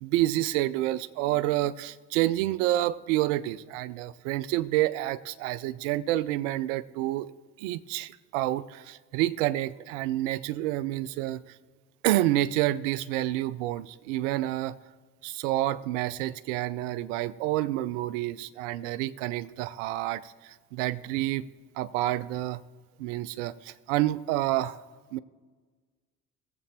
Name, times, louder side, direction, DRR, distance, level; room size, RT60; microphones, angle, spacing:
voice 1, 0.0-7.3 7.6-11.4 12.0-14.8 15.2-21.5 21.8-22.6 23.0-24.8 25.1-25.2, right 15 dB, 75° right, 16 dB, 0.6 m, -28 dB
20.0 x 7.7 x 2.9 m, 1.4 s
hypercardioid pair, 50°, 38 cm